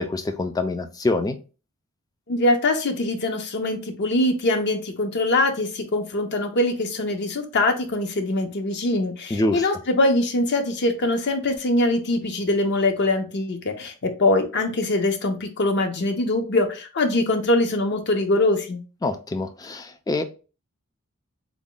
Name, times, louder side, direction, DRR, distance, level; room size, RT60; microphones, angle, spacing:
voice 1, 0.0-1.4 9.3-9.7 19.0-20.2, left 2 dB, 15° left, 0.3 m, -25 dB
voice 2, 2.3-18.8, left 2 dB, 50° left, 0.6 m, -23 dB
3.5 x 2.1 x 3.8 m
head